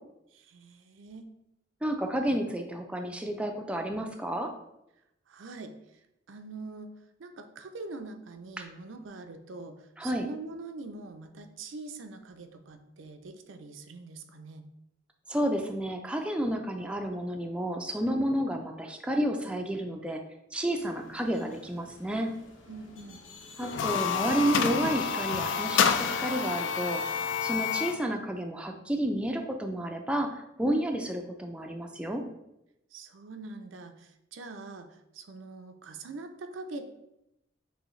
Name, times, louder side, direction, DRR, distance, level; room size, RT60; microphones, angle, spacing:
voice 1, 0.3-1.3 5.3-5.8 6.3-6.9 7.2-14.6 22.7-23.2 32.9-37.0, right 3 dB, 80° right, 7 dB, 0.5 m, -43 dB
voice 2, 1.8-4.5 10.0-10.3 15.3-20.2 20.5-22.3 23.6-32.2, right 1 dB, 5° right, 3 dB, 0.3 m, -31 dB
sound 1, 20.7-25.9, left 3 dB, 85° left, 0.8 m, -52 dB
sound 2, 23.6-28.0, left 7 dB, 70° left, 0.3 m, -28 dB
6.2 x 2.7 x 3.1 m, 0.86 s
head